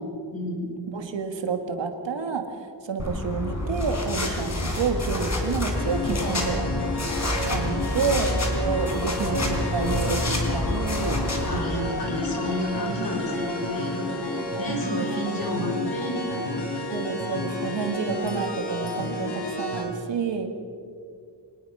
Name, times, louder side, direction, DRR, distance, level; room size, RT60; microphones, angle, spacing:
voice 1, 0.3-0.7 7.8-8.0 11.5-16.6, equal, 55° left, 0 dB, 5.8 m, -31 dB
voice 2, 0.9-2.5 2.8-6.7 7.5-11.2 14.5-15.1 16.9-20.5, right 5 dB, 85° right, 6 dB, 2.1 m, -29 dB
sound 1, 3.0-11.6, left 2 dB, 40° left, 4.1 m, -28 dB
sound 2, 5.7-19.8, left 1 dB, 75° left, 3.8 m, -31 dB
24.5 x 19.5 x 5.7 m, 2.4 s
wide cardioid pair, 90°, 43 cm